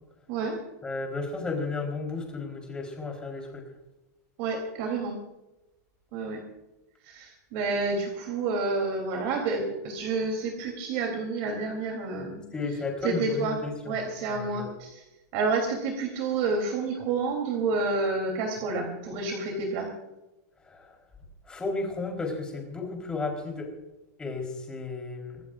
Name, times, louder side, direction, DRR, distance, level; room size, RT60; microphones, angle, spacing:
voice 1, 0.3-0.6 4.4-5.2 6.1-6.4 7.0-12.4 12.7-15.0 15.3-19.9, right 3 dB, 40° right, 2 dB, 3.3 m, -29 dB
voice 2, 0.8-3.6 12.5-13.9 14.3-14.7 20.7-20.9 21.5-23.7 24.2-25.4, left 3 dB, 10° left, 1 dB, 4.0 m, -33 dB
25.5 x 18.5 x 2.5 m, 0.99 s
supercardioid pair, 175°, 9 cm